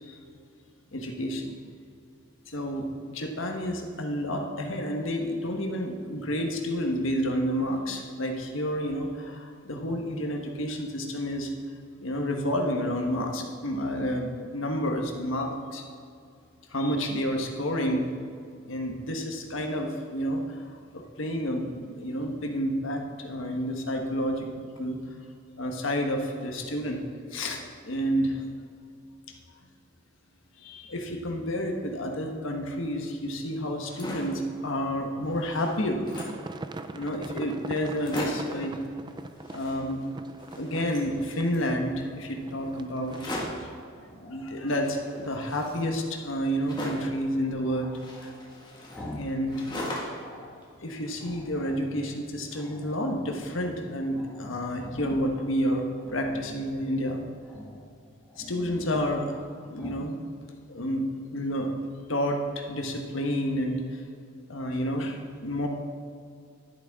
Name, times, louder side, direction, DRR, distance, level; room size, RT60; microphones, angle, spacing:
voice 1, 0.9-1.5 2.5-11.5 12.0-15.8 16.7-18.3 18.6-24.5 24.8-25.0 25.6-27.0 27.3-28.4 30.6-36.1 36.9-38.8 39.5-40.0 40.6-43.3 43.6-43.7 44.1-48.3 49.1-49.6 50.8-57.2 58.4-59.3 59.6-60.2 60.7-61.7 62.1-64.0 64.5-65.7, equal, 75° left, 2 dB, 1.4 m, -30 dB
sound 1, 33.7-34.4 34.9-35.0 35.2-36.5 37.1-37.2 37.4-37.5 37.8-38.6 39.3-40.1 40.4-41.7 43.1-43.7 44.7-47.2 47.9-50.3 50.6-51.5, left 1 dB, 20° left, 1.8 m, -39 dB
sound 2, 36.1-43.6, right 2 dB, 20° right, 0.3 m, -42 dB
Growling, 43.3-45.3 47.6-49.4 49.7-50.6 51.2-52.1 52.5-53.5 53.8-53.9 54.1-55.5 55.9-56.7 57.4-57.9 58.2-59.4 59.8-60.1, equal, 5° left, 1.6 m, -45 dB
11.5 x 10.5 x 3.7 m, 2.4 s
head